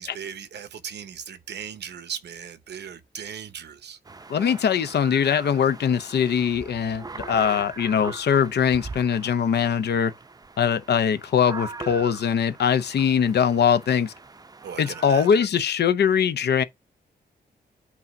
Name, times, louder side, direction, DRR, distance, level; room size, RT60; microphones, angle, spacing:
voice 1, 0.0-4.0 14.6-15.3, right 8 dB, 85° right, 0.9 m, -38 dB
sound 1, 4.0-15.5, right 3 dB, 20° right, 0.5 m, -41 dB
voice 2, 4.3-10.1 10.6-14.1 14.8-16.6, left 7 dB, 75° left, 0.7 m, -22 dB
8.3 x 2.8 x 5.2 m
wide cardioid pair, 100°, 17 cm